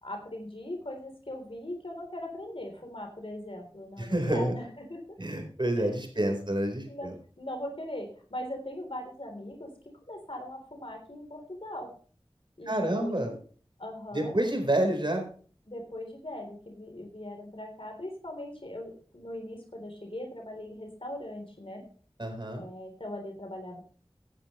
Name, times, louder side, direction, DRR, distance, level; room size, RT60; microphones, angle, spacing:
voice 1, 0.0-5.0 6.1-6.3 6.9-7.1 7.4-9.7 10.1-11.9 12.6-13.2 13.8-14.3 15.7-21.8 22.6-23.8, left 1 dB, 65° left, 2 dB, 3.6 m, -40 dB
voice 2, 4.0-4.5 5.2-7.1 12.7-13.3 14.1-15.2 22.2-22.6, right 1 dB, 50° right, 4 dB, 4.2 m, -28 dB
17.0 x 10.0 x 3.2 m, 0.42 s
wide cardioid pair, 40°, 10 cm